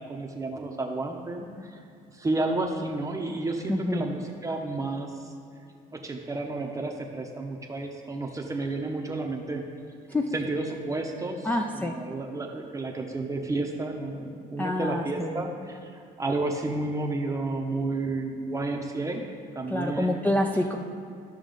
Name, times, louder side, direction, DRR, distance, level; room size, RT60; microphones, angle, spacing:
voice 1, 0.0-1.8 2.1-5.3 5.9-9.6 10.3-11.5 11.7-19.2 19.6-20.2, right 2 dB, 20° right, 1 dB, 0.8 m, -31 dB
voice 2, 3.7-4.1 10.1-10.3 11.4-12.0 14.6-15.4 19.7-20.8, left 1 dB, 10° left, 3 dB, 0.5 m, -27 dB
13.0 x 6.1 x 3.9 m, 2.4 s
cardioid pair, 110°, 17 cm